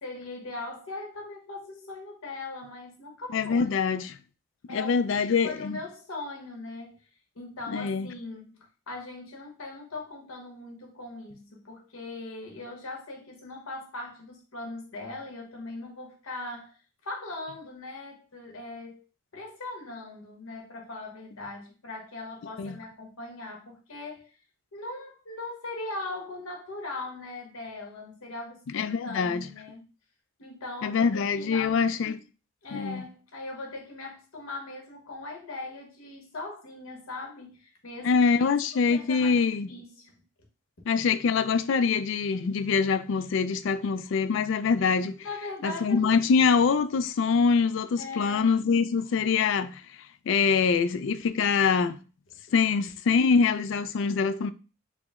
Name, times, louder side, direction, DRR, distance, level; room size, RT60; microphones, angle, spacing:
voice 1, 0.0-3.7 4.7-7.0 7.3-16.8 17.0-19.0 19.3-24.3 24.7-29.8 30.4-32.2 32.6-38.2 38.9-40.2 45.2-46.2 48.0-48.5, left 2 dB, 80° left, 1.2 m, -40 dB
voice 2, 3.3-4.1 4.7-5.8 7.7-8.1 22.6-22.8 28.7-29.4 30.8-32.2 32.7-33.0 38.0-39.7 40.9-45.2 45.6-49.8 50.3-52.0 52.5-54.5, left 5 dB, 65° left, 0.3 m, -24 dB
4.8 x 2.0 x 3.5 m
head